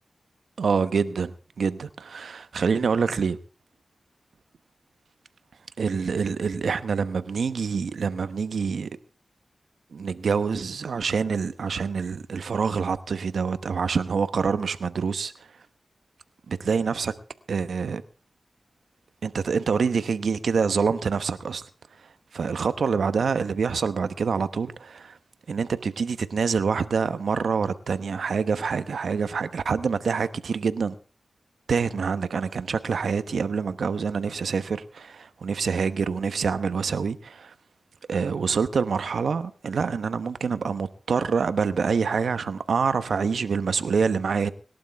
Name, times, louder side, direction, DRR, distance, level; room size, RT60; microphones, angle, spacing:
voice 1, 0.6-3.4 5.8-8.9 9.9-15.3 16.5-17.1 17.5-18.0 19.2-21.6 22.3-25.2 25.5-30.9 31.7-37.5 38.1-44.5, right 5 dB, 85° right, 12 dB, 1.0 m, -26 dB
26.0 x 12.0 x 3.5 m, 0.35 s
cardioid pair, 45°, 0 cm